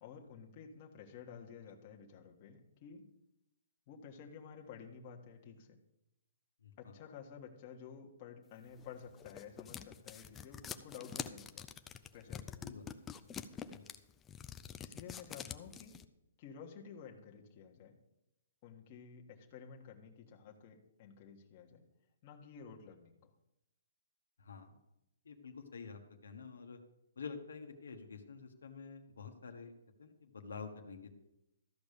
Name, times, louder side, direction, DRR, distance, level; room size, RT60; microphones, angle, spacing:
voice 1, 0.0-3.0 3.9-5.8 6.8-11.7 12.1-12.7 14.8-15.9 16.4-18.0 18.6-21.8 22.2-23.3, left 6 dB, 35° left, 0 dB, 1.4 m, -52 dB
voice 2, 6.6-7.0 12.6-12.9 13.7-13.8 24.4-24.8 25.2-26.8 27.2-29.7 30.0-31.1, left 5 dB, 85° left, 5 dB, 1.4 m, -48 dB
sound 1, 8.8-16.0, left 7 dB, 15° left, 0.4 m, -46 dB
13.5 x 5.2 x 6.7 m, 0.88 s
hypercardioid pair, 155°, 0 cm